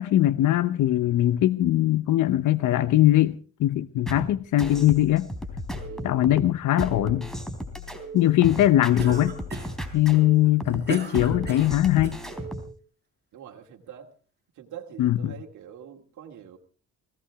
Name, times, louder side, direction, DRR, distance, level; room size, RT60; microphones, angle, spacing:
voice 1, 0.0-5.3 6.0-7.3 8.1-9.3 9.9-12.2 15.0-15.3, left 14 dB, 80° left, 0.9 m, -21 dB
sound 1, 4.1-12.7, equal, ahead, 3.7 m, -35 dB
voice 2, 5.9-6.4 13.3-14.1 14.5-16.6, right 9 dB, 75° right, 2.4 m, -44 dB
Cough, 9.0-9.9 10.4-12.2, right 5 dB, 35° right, 5.8 m, -36 dB
20.5 x 17.0 x 3.6 m
cardioid pair, 90°, 30 cm